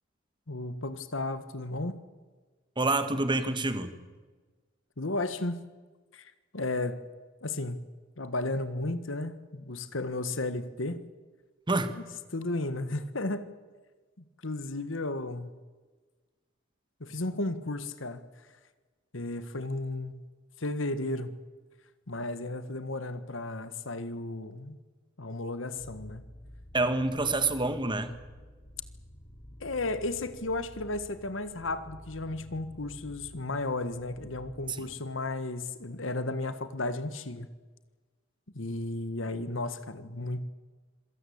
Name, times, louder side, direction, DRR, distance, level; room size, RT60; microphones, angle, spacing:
voice 1, 0.5-2.0 5.0-5.6 6.1-7.0 7.4-7.8 8.2-11.0 12.3-13.5 14.4-15.5 17.0-18.2 19.1-20.2 20.6-21.4 22.1-24.8 25.2-26.2 29.6-37.5 38.5-40.5, left 2 dB, 75° left, 12 dB, 1.5 m, -34 dB
voice 2, 2.8-4.0 11.7-11.9 26.7-28.1 34.7-34.9, right 2 dB, 25° right, 9 dB, 1.7 m, -27 dB
sound 1, 25.8-35.0, equal, 35° left, 5.5 m, -50 dB
26.5 x 17.0 x 8.7 m, 1.4 s
head